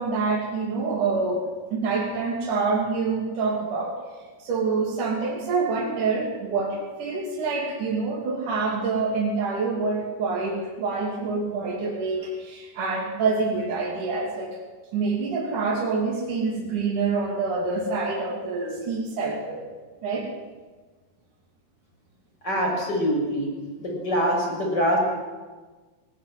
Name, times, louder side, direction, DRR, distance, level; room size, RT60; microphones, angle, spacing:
voice 1, 0.0-1.5 1.7-4.0 4.4-14.6 14.9-19.6 20.0-20.3, right 4 dB, 65° right, -2 dB, 4.4 m, -26 dB
voice 2, 22.4-23.5 23.8-25.0, equal, 30° left, 0 dB, 6.8 m, -24 dB
22.0 x 17.5 x 9.6 m, 1.4 s
omnidirectional pair, 4.0 m